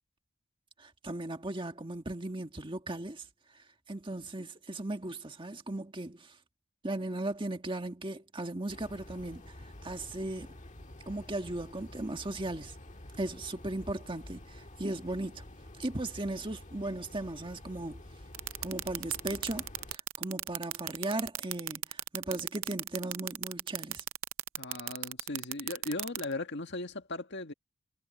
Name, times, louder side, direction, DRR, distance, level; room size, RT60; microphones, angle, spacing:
voice 1, 0.8-3.3 3.9-6.3 6.8-9.6 9.8-10.6 11.1-12.8 13.2-15.4 15.8-18.0 18.6-24.0, right 2 dB, 25° right, 1.7 m, -37 dB
sound 1, 8.7-20.0, left 1 dB, 35° left, 1.6 m, -49 dB
sound 2, 18.3-26.2, right 16 dB, 65° right, 0.5 m, -34 dB
voice 2, 24.6-27.5, left 2 dB, 55° left, 1.8 m, -38 dB
head